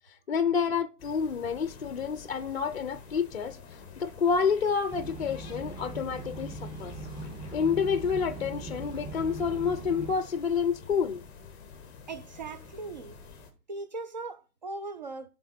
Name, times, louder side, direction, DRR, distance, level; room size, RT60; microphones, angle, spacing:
voice 1, 0.3-3.6 4.0-6.9 7.5-11.2, left 6 dB, 45° left, 0.5 m, -28 dB
sound 1, 1.0-13.5, left 5 dB, 10° left, 0.7 m, -49 dB
sound 2, 4.9-10.1, right 2 dB, 10° right, 1.8 m, -40 dB
voice 2, 12.1-13.2 13.7-15.3, right 3 dB, 30° right, 0.5 m, -39 dB
11.0 x 3.7 x 4.1 m
figure-of-eight pair, 140°, 47 cm